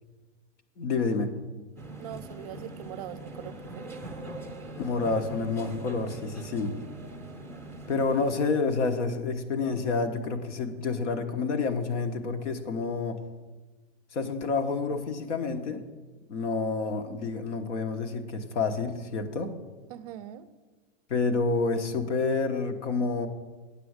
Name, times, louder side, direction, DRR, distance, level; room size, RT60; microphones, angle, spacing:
voice 1, 0.8-1.3 4.8-6.8 7.9-13.2 14.1-15.9 16.3-19.5 21.1-23.3, left 4 dB, 75° left, 8 dB, 1.2 m, -29 dB
sound 1, 1.8-8.3, right 2 dB, 10° left, 0.7 m, -42 dB
voice 2, 2.0-3.9 19.9-20.5, right 11 dB, 35° right, 14 dB, 0.4 m, -42 dB
8.7 x 7.0 x 6.5 m, 1.3 s
supercardioid pair, 155°, 35 cm